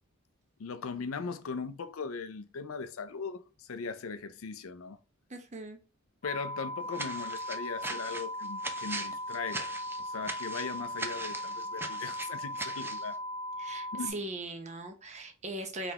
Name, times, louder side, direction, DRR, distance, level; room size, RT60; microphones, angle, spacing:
voice 1, 0.6-5.0 6.2-13.2 13.9-14.1, left 5 dB, 80° left, 0.5 m, -39 dB
voice 2, 5.3-5.8 13.6-15.9, right 2 dB, 35° right, 0.8 m, -39 dB
sound 1, 6.2-14.1, left 1 dB, 30° left, 0.7 m, -38 dB
sound 2, 6.9-13.1, right 2 dB, 10° right, 0.5 m, -40 dB
3.9 x 3.4 x 2.8 m
head